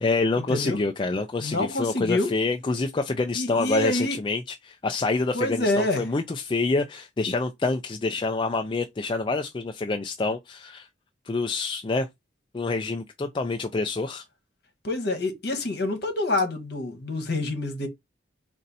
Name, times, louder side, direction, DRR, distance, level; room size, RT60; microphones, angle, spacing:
voice 1, 0.0-10.9 11.3-12.1 12.5-14.2, left 3 dB, 25° left, 0.4 m, -27 dB
voice 2, 1.4-2.3 3.3-4.2 5.3-6.0 14.8-17.9, left 2 dB, 60° left, 1.2 m, -26 dB
4.2 x 2.6 x 4.0 m
head